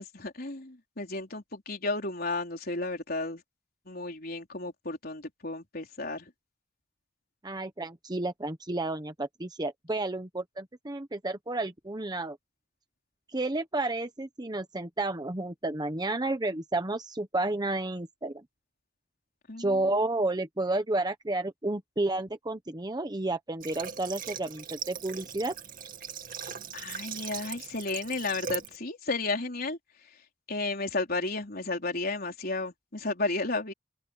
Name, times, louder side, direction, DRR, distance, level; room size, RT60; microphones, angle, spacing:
voice 1, 0.0-3.4 3.9-6.3 19.5-19.8 26.7-30.1 30.5-33.7, left 3 dB, 50° left, 4.3 m, -33 dB
voice 2, 7.4-12.4 13.3-18.4 19.6-25.5, right 2 dB, 20° right, 1.0 m, -31 dB
Water / Water tap faucet, 23.6-28.8, right 7 dB, 45° right, 2.3 m, -40 dB
open air
head